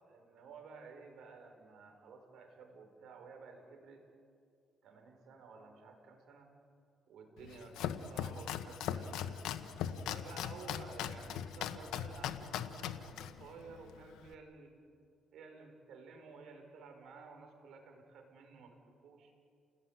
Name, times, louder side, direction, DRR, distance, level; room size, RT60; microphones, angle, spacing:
voice 1, 0.0-4.0 4.8-6.5 7.1-9.6 10.0-14.8 15.3-19.3, right 4 dB, 75° right, 3 dB, 5.5 m, -53 dB
Domestic sounds home sounds, 7.4-14.3, left 9 dB, 90° left, 1.2 m, -40 dB
30.0 x 18.0 x 9.8 m, 2.3 s
cardioid pair, 90°, 0 cm